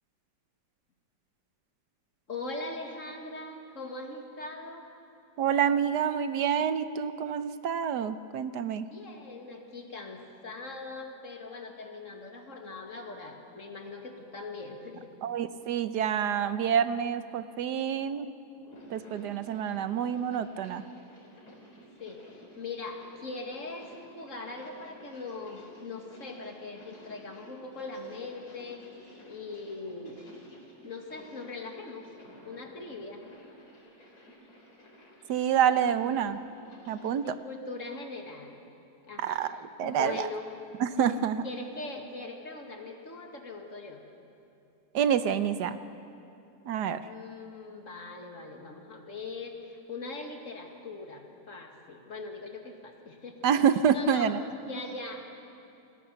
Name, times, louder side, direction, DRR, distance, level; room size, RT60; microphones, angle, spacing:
voice 1, 2.3-4.9 8.8-15.1 22.0-28.8 29.3-30.2 30.8-32.0 32.4-33.2 37.2-38.6 39.1-39.5 39.8-40.5 41.0-41.2 41.4-44.0 47.0-53.4 53.9-54.3 54.6-55.2, left 3 dB, 50° left, 2 dB, 2.5 m, -41 dB
voice 2, 5.4-8.9 15.2-18.3 18.9-20.8 35.3-36.4 36.9-37.3 39.2-40.3 40.8-41.4 44.9-45.8 46.7-47.0 53.4-54.4, right 8 dB, 80° right, 12 dB, 1.4 m, -27 dB
sound 1, 18.5-37.2, equal, 65° left, 4.2 m, -53 dB
28.5 x 19.5 x 6.9 m, 2.7 s
omnidirectional pair, 1.8 m